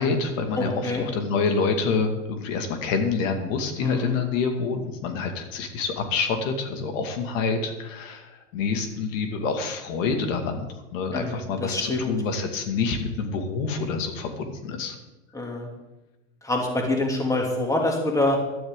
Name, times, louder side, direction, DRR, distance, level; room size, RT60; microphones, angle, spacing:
voice 1, 0.0-15.0, left 4 dB, 70° left, 5 dB, 2.2 m, -27 dB
voice 2, 0.6-1.0 3.8-4.1 11.1-12.1 15.3-15.7 16.4-18.4, left 2 dB, 10° left, 1 dB, 2.7 m, -26 dB
15.5 x 12.0 x 3.8 m, 1.0 s
supercardioid pair, 130°, 40 cm